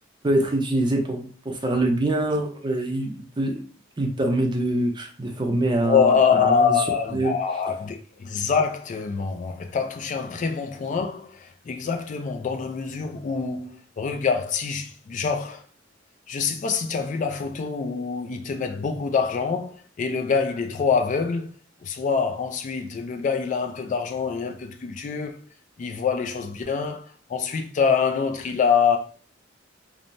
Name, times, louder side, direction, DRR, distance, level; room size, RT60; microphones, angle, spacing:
voice 1, 0.2-3.6 4.0-6.8 7.1-7.3, right 1 dB, 25° right, 0.5 m, -24 dB
voice 2, 5.8-15.6 16.3-21.5 21.8-25.4 25.8-29.0, left 6 dB, 40° left, 0.3 m, -25 dB
3.1 x 2.0 x 2.6 m
head